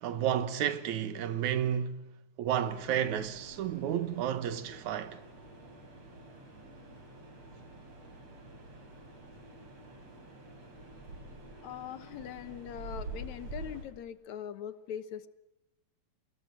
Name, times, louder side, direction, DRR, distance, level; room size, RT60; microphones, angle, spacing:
voice 1, 0.0-2.1 2.4-5.2, right 9 dB, 90° right, 2.7 m, -31 dB
sound 1, 2.6-13.8, right 2 dB, 60° right, 5.6 m, -48 dB
voice 2, 11.6-15.3, left 9 dB, 75° left, 2.5 m, -41 dB
25.0 x 20.5 x 9.1 m
omnidirectional pair, 3.3 m